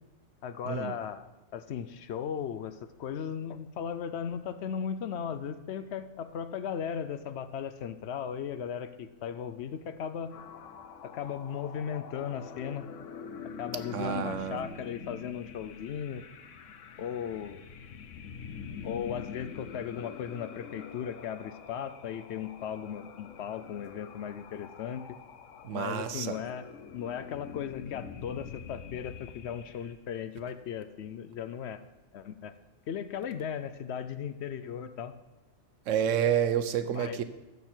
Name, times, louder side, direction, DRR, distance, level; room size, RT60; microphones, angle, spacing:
voice 1, 0.4-10.3 11.0-12.8 13.6-16.2 17.0-17.6 18.8-25.2 25.7-26.7 26.9-31.8 32.1-32.5 32.9-35.1 36.9-37.2, left 8 dB, 65° left, 12 dB, 0.8 m, -37 dB
sound 1, 10.3-29.9, left 6 dB, 85° left, 1.1 m, -45 dB
voice 2, 13.9-14.6 25.6-26.4 35.9-37.2, right 9 dB, 85° right, 11 dB, 1.0 m, -29 dB
13.5 x 6.5 x 4.4 m, 1.1 s
omnidirectional pair, 1.3 m